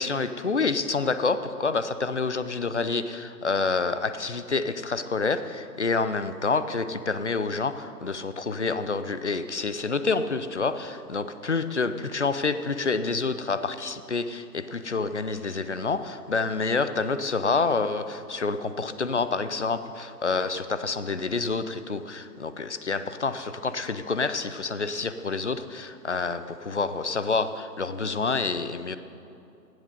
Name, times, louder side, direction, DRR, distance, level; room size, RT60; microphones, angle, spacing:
voice 1, 0.0-29.0, left 4 dB, 50° left, 11 dB, 0.5 m, -28 dB
18.0 x 7.9 x 5.4 m, 2.7 s
hypercardioid pair, 180°, 48 cm